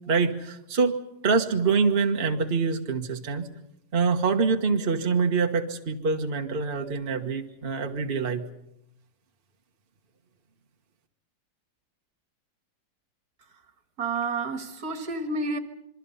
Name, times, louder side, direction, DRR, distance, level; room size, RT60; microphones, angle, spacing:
voice 1, 0.1-1.0 1.2-3.5 3.9-8.4, right 4 dB, 35° right, 1.4 m, -25 dB
voice 2, 14.0-15.6, right 3 dB, 55° right, 2.0 m, -29 dB
27.0 x 23.0 x 5.6 m
omnidirectional pair, 2.0 m